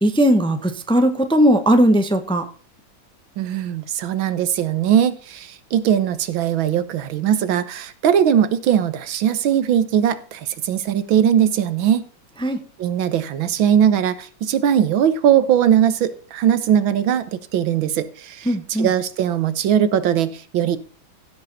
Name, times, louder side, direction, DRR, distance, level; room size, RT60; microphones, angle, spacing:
voice 1, 0.0-2.4 12.4-12.6 18.5-18.9, equal, 5° left, 7 dB, 0.8 m, -17 dB
voice 2, 3.4-12.0 12.8-20.8, right 9 dB, 85° right, 14 dB, 1.8 m, -20 dB
15.5 x 6.9 x 4.0 m, 0.41 s
omnidirectional pair, 2.1 m